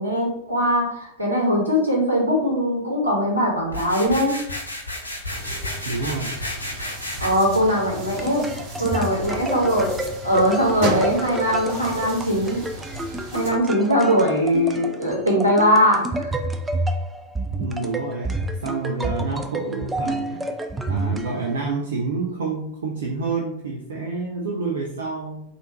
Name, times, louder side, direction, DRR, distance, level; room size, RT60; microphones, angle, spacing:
voice 1, 0.0-4.4 7.2-8.4 8.8-9.9 10.2-12.6 13.3-16.3, equal, 85° right, -3 dB, 1.2 m, -21 dB
sound 1, 3.7-7.3, left 1 dB, 80° left, 0.6 m, -32 dB
sound 2, 5.3-13.5, right 1 dB, 45° right, 1.2 m, -33 dB
voice 2, 5.8-6.4 17.6-20.4 20.9-25.4, right 4 dB, 65° right, -2 dB, 0.5 m, -28 dB
sound 3, 8.0-21.8, right 2 dB, 10° right, 0.3 m, -29 dB
3.4 x 2.5 x 2.8 m, 0.73 s
figure-of-eight pair, 90°, 0 cm